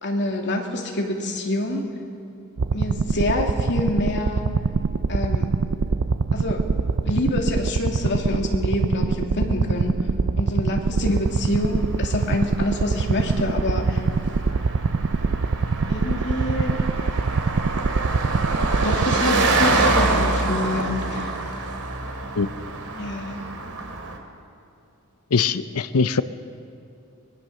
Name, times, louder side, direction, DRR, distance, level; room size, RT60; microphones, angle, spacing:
voice 1, 0.0-1.9 2.7-4.4 5.1-5.5 6.3-6.7 7.1-10.0 10.4-14.1 15.9-16.8 18.6-21.4 23.0-23.4, left 1 dB, 55° left, 1 dB, 2.6 m, -26 dB
sound 1, 2.6-19.2, right 4 dB, 60° right, 0.5 m, -24 dB
Car passing by, 11.0-24.2, right 3 dB, 85° right, 2.6 m, -26 dB
voice 2, 25.3-26.2, left 5 dB, 80° left, 12 dB, 0.7 m, -21 dB
23.5 x 21.0 x 6.6 m, 2.8 s
head